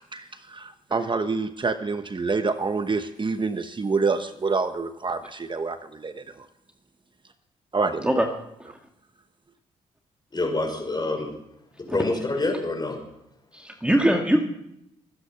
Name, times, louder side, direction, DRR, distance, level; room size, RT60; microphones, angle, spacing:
voice 1, 0.1-6.5 7.7-8.2, right 4 dB, 35° right, 9 dB, 1.0 m, -27 dB
voice 2, 10.3-11.3 11.8-13.0, left 2 dB, 30° left, 3 dB, 5.9 m, -27 dB
voice 3, 13.5-14.4, right 1 dB, 5° right, 2 dB, 2.1 m, -22 dB
24.0 x 10.0 x 5.7 m, 0.82 s
supercardioid pair, 50°, 15 cm